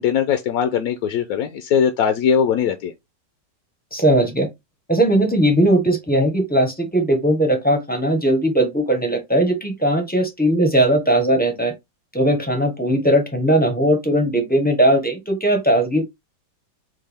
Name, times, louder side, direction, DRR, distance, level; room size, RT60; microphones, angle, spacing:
voice 1, 0.0-2.9, left 7 dB, 70° left, 1.0 m, -20 dB
voice 2, 3.9-4.5 4.9-11.7 12.1-16.0, right 1 dB, 10° left, 0.5 m, -18 dB
6.5 x 2.3 x 3.4 m
omnidirectional pair, 2.0 m